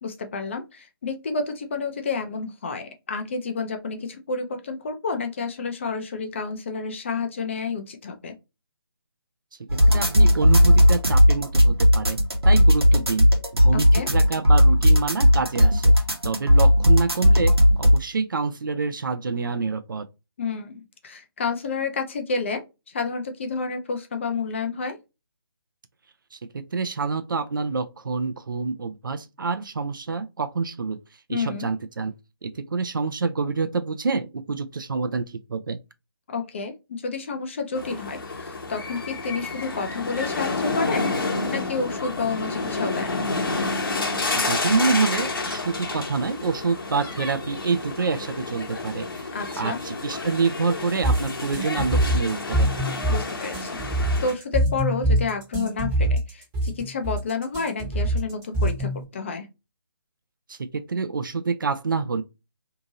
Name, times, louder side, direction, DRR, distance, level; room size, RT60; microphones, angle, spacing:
voice 1, 0.0-8.3 13.9-14.1 20.4-25.0 31.3-31.7 36.3-41.1 41.5-43.2 49.3-49.8 53.1-59.5, left 4 dB, 30° left, 0.5 m, -30 dB
sound 1, 9.7-18.0, equal, 90° right, 1.0 m, -16 dB
voice 2, 9.9-12.2 12.4-13.3 13.5-15.9 16.2-20.0 26.3-31.0 31.3-32.1 32.4-35.8 44.3-49.3 49.6-52.7 60.5-62.2, right 4 dB, 55° right, 0.5 m, -27 dB
sound 2, 37.7-54.3, left 3 dB, 60° left, 1.0 m, -30 dB
sound 3, 51.0-59.0, right 1 dB, 15° right, 0.9 m, -24 dB
2.7 x 2.5 x 2.8 m
figure-of-eight pair, 150°, 13 cm